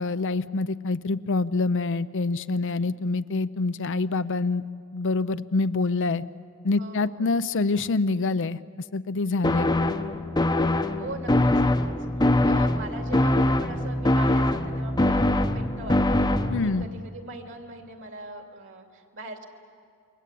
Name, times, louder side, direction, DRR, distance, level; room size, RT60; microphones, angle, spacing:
voice 1, 0.0-4.6 4.9-6.2 6.6-8.6 8.9-10.0 16.5-16.9, left 3 dB, 60° left, 14 dB, 0.6 m, -26 dB
voice 2, 6.8-7.3 11.0-11.7 12.4-16.2 16.6-19.5, right 2 dB, 60° right, 4 dB, 2.9 m, -41 dB
sound 1, 9.4-16.8, left 1 dB, 20° left, 0.9 m, -23 dB
28.0 x 23.5 x 8.4 m, 2.3 s
head